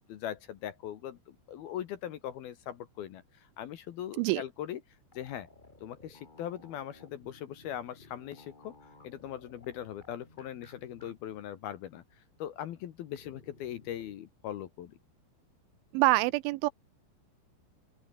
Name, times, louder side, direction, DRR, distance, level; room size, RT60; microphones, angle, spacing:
voice 1, 0.0-4.8 5.1-5.5 5.8-8.7 9.0-15.0, left 11 dB, 65° left, 2.7 m, -40 dB
sound 1, 5.1-11.1 11.4-11.5 13.2-14.1, left 2 dB, 50° left, 0.5 m, -57 dB
voice 2, 15.9-16.7, right 21 dB, 85° right, 3.0 m, -25 dB
open air
omnidirectional pair, 5.6 m